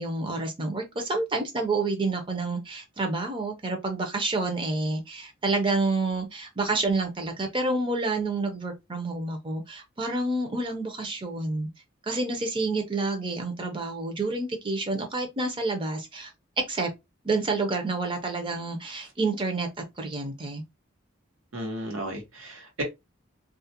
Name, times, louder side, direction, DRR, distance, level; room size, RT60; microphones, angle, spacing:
voice 1, 0.0-11.7 12.1-16.3 16.7-16.9 17.2-19.7 20.0-20.6, right 3 dB, 25° right, 0.5 m, -29 dB
voice 2, 21.5-22.8, right 1 dB, 85° right, 0.9 m, -34 dB
2.4 x 2.1 x 2.7 m
head